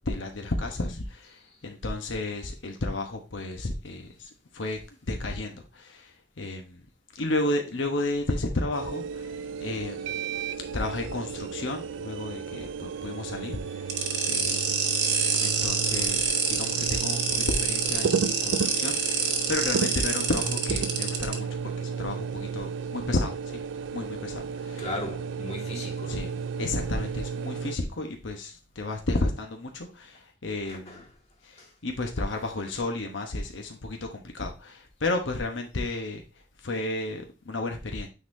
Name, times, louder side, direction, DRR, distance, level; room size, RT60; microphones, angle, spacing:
voice 1, 0.0-6.8 7.1-10.2 10.7-14.8 15.4-21.5 21.8-23.6 23.9-24.9 26.1-26.3 26.6-30.9 31.4-36.2 36.6-38.1, left 2 dB, 90° left, 1.0 m, -32 dB
sound 1, 8.7-27.8, right 6 dB, 80° right, 0.4 m, -33 dB
sound 2, 13.9-21.3, right 6 dB, 60° right, 1.3 m, -27 dB
voice 2, 24.8-26.4 30.7-31.1 31.6-31.7, left 1 dB, 35° left, 1.8 m, -37 dB
9.2 x 4.0 x 2.6 m
head